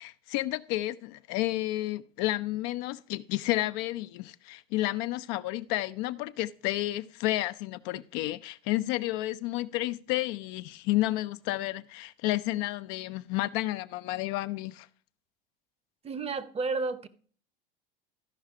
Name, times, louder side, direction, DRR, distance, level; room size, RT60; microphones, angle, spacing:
voice 1, 0.0-14.9, left 16 dB, 55° left, 0.5 m, -31 dB
voice 2, 16.0-17.1, right 4 dB, 20° right, 0.8 m, -31 dB
13.0 x 5.5 x 4.8 m
hypercardioid pair, 85°, 29 cm